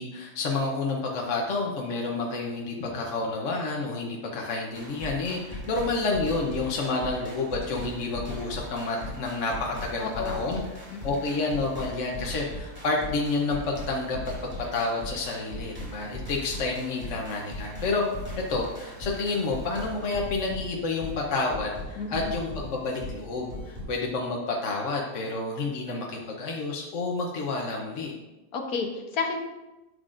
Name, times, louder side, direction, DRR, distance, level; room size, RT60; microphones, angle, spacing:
voice 1, 0.0-10.6 11.0-14.2 14.7-18.0 18.5-28.1, left 3 dB, 60° left, -1 dB, 1.2 m, -29 dB
sound 1, 4.7-23.8, equal, 5° right, 2.5 m, -39 dB
voice 2, 10.0-11.2 22.0-22.3 28.5-29.4, left 4 dB, 85° left, 4 dB, 1.4 m, -32 dB
11.0 x 6.5 x 2.5 m, 1.1 s
omnidirectional pair, 1.6 m